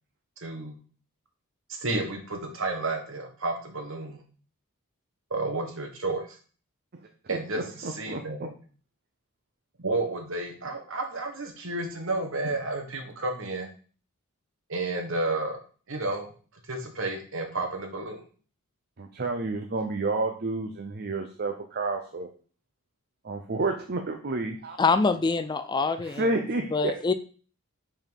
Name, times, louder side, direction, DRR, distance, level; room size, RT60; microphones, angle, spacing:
voice 1, 0.4-0.7 1.7-4.2 5.3-6.4 7.3-8.5 9.8-13.7 14.7-15.6 15.9-16.3 16.7-18.2, right 2 dB, 60° right, 1.6 m, -31 dB
voice 2, 7.2-8.5 19.0-22.3 23.2-24.8 26.0-27.1, right 2 dB, 45° right, 0.7 m, -30 dB
voice 3, 24.8-26.3 26.7-27.1, left 4 dB, 20° left, 0.3 m, -25 dB
5.6 x 4.4 x 5.3 m
head